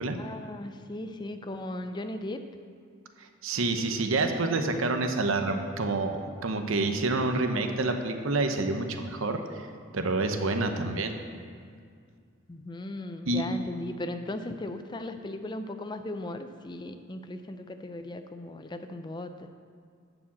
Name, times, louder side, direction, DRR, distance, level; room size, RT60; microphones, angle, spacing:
voice 1, 0.1-2.4 4.5-4.6 12.5-19.5, left 1 dB, 20° left, 8 dB, 0.4 m, -37 dB
voice 2, 3.4-9.7 9.9-11.1 13.3-13.4, right 3 dB, 80° right, 6 dB, 0.9 m, -28 dB
11.0 x 5.0 x 7.3 m, 2.2 s
head